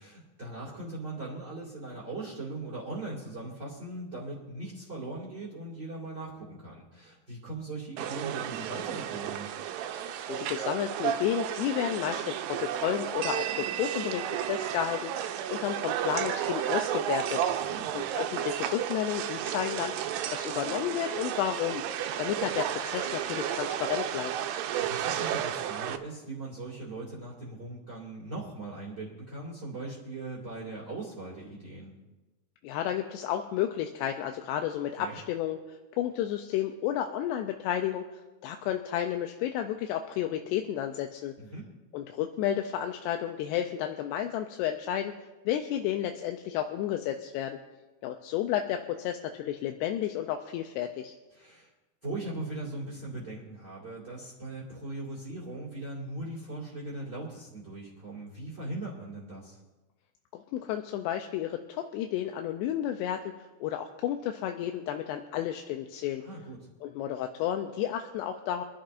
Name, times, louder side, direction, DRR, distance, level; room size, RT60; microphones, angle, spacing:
voice 1, 0.0-9.6 17.7-17.9 24.8-31.9 35.0-35.2 41.4-41.7 51.3-51.7 52.0-59.6 66.2-66.6, right 2 dB, 30° right, -4 dB, 2.2 m, -39 dB
sound 1, 8.0-26.0, right 10 dB, 85° right, 2.7 m, -32 dB
voice 2, 10.2-17.4 17.9-21.8 22.2-24.3 32.6-41.3 41.9-45.2 45.5-47.6 48.0-51.2 60.3-66.2 66.8-68.6, left 11 dB, 85° left, 5 dB, 2.7 m, -32 dB
26.0 x 11.5 x 2.5 m, 1.1 s
omnidirectional pair, 4.9 m